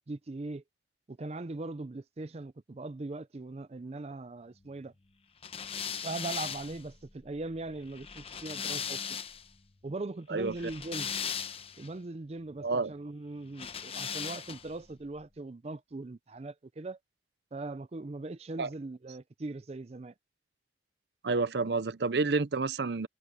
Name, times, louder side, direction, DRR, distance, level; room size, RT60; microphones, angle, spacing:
voice 1, 0.1-0.6 1.1-4.9 6.0-9.2 9.8-11.1 11.8-17.0 17.5-20.1, right 2 dB, 35° right, 0.5 m, -40 dB
sound 1, 5.4-9.5 10.4-11.9 13.5-14.8, left 7 dB, 35° left, 0.9 m, -38 dB
voice 2, 12.6-12.9 18.6-18.7 21.2-23.1, right 3 dB, 70° right, 0.7 m, -29 dB
head